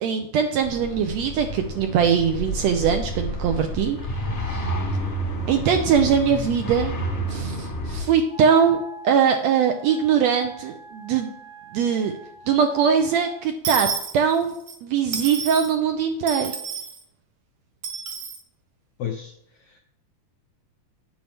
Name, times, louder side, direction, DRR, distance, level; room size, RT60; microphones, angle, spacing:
voice 1, 0.0-4.0 4.5-4.7 5.5-6.9 7.3-11.3 11.7-12.1 12.5-13.9 14.1-14.5 14.8-16.5, right 7 dB, 75° right, 6 dB, 1.6 m, -21 dB
sound 1, 0.6-8.0, equal, 50° left, 0.8 m, -30 dB
Wind instrument woodwind instrument, 8.3-13.5, equal, 15° right, 0.8 m, -44 dB
Dishes pots and pans / Coin (dropping), 13.6-14.8 15.1-15.7 16.3-17.0 17.8-18.4, right 6 dB, 60° right, 2.5 m, -30 dB
voice 2, 19.0-19.8, left 9 dB, 75° left, 3 dB, 1.4 m, -33 dB
10.5 x 8.5 x 3.5 m, 0.74 s
omnidirectional pair, 3.6 m